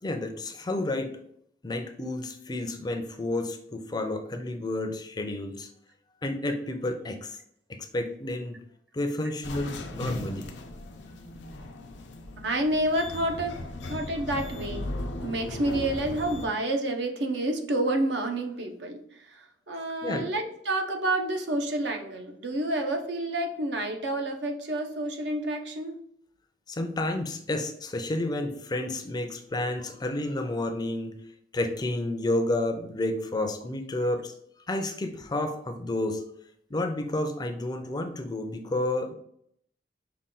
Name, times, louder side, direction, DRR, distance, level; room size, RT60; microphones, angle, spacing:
voice 1, 0.0-1.1 1.6-5.7 6.2-7.4 7.7-8.6 8.9-10.5 20.0-20.3 26.7-31.2 31.5-34.3 34.7-36.2 36.7-39.1, left 1 dB, 25° left, 6 dB, 0.4 m, -30 dB
sound 1, 9.4-16.5, left 2 dB, 85° left, 0.5 m, -37 dB
voice 2, 12.4-13.6 13.9-14.8 15.2-19.0 19.7-26.0, right 1 dB, 70° right, 4 dB, 0.6 m, -29 dB
5.4 x 2.2 x 3.7 m, 0.67 s
head